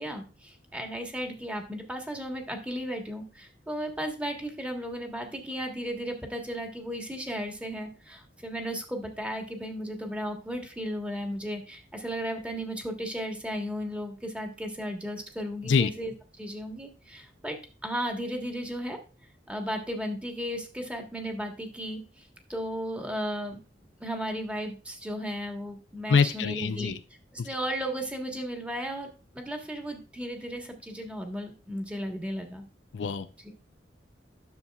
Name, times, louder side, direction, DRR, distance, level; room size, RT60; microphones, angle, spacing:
voice 1, 0.0-17.6 17.8-19.0 19.5-23.6 24.0-26.9 27.3-32.6 33.4-33.5, equal, 5° right, 3 dB, 1.3 m, -35 dB
voice 2, 26.1-27.0 27.4-27.5 32.9-33.3, left 5 dB, 85° left, 11 dB, 0.5 m, -24 dB
10.5 x 6.8 x 2.3 m, 0.33 s
head